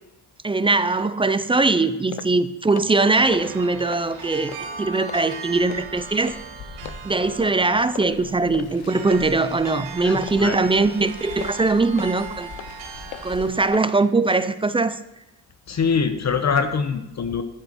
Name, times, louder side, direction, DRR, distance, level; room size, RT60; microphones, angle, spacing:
voice 1, 0.4-6.4 7.0-12.5 13.2-15.0, right 3 dB, 15° right, 12 dB, 0.4 m, -21 dB
sound 1, 1.0-1.1 1.5-1.7 2.1-2.3 2.6-3.0 3.3-3.5 3.9-4.1 4.5-4.6 5.1-5.2 5.7-5.8 6.3-6.4 6.8-7.0 7.4-7.6 7.9-8.1 8.5-8.7 9.1-9.2 9.6-9.8 10.2-10.4 10.8-10.9 11.4-11.6 12.0-12.1 12.6-12.7 13.1-13.3 13.7-13.9 14.3-14.5, left 13 dB, 85° left, 0.7 m, -37 dB
sound 2, 3.0-13.4, right 5 dB, 90° right, 2.1 m, -39 dB
Car, 5.5-13.7, left 3 dB, 60° left, 2.3 m, -43 dB
voice 2, 10.0-10.6 13.0-13.1 15.7-17.4, left 5 dB, 40° left, 9 dB, 0.9 m, -24 dB
12.0 x 7.8 x 6.0 m, 0.93 s
cardioid pair, 145°, 43 cm